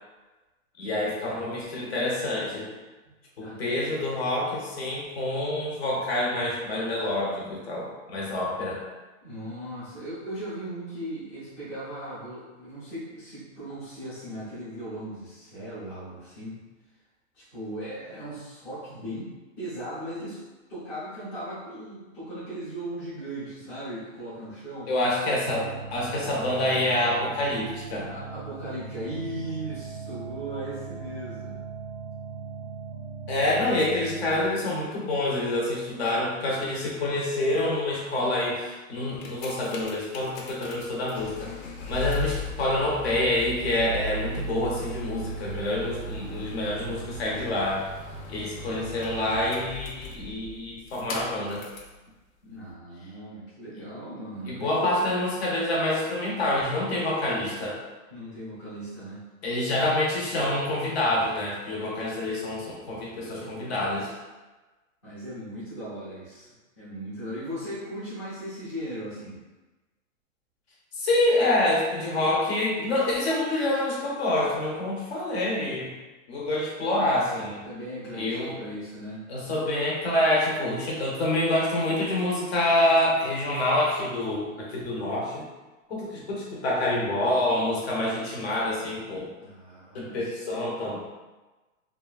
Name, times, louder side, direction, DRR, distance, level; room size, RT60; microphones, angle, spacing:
voice 1, 0.8-2.7 3.4-8.8 24.9-28.1 33.3-41.5 41.8-47.8 48.3-51.7 54.5-57.8 59.4-64.1 70.9-76.0 76.3-77.6 78.1-78.6 79.3-85.4 85.9-89.3 89.9-91.0, left 1 dB, 50° left, -4 dB, 0.8 m, -27 dB
voice 2, 9.2-16.6 17.3-19.3 19.6-20.4 20.7-24.9 28.0-31.6 34.3-34.4 52.4-55.0 58.1-59.2 59.6-59.8 63.4-64.0 65.0-69.4 77.6-79.2 84.5-84.6 89.4-90.4, right 1 dB, 15° left, -13 dB, 0.5 m, -38 dB
sound 1, 25.5-34.7, right 5 dB, 45° right, 0.5 m, -39 dB
sound 2, 39.0-52.0 52.7-52.8, left 1 dB, 85° left, 0.7 m, -37 dB
2.9 x 2.4 x 2.3 m, 1.2 s
hypercardioid pair, 170°, 40 cm